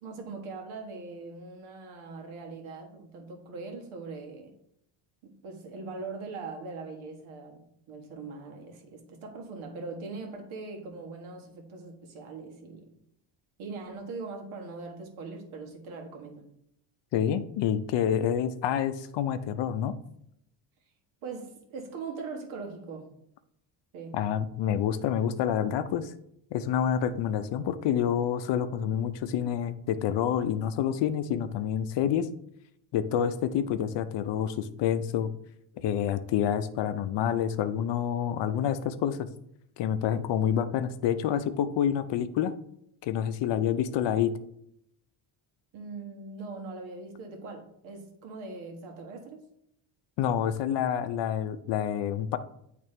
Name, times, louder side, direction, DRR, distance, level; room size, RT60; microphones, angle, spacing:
voice 1, 0.0-4.5 5.2-7.6 7.9-12.9 13.6-16.4 21.2-23.1 23.9-24.2 45.7-49.4, right 4 dB, 70° right, 2 dB, 1.6 m, -41 dB
voice 2, 17.1-20.0 24.1-26.1 26.5-32.3 32.9-35.3 35.8-39.3 39.8-42.5 43.0-44.3 50.2-52.4, left 9 dB, 60° left, 12 dB, 0.6 m, -28 dB
8.8 x 3.4 x 3.2 m, 0.75 s
cardioid pair, 105°, 49 cm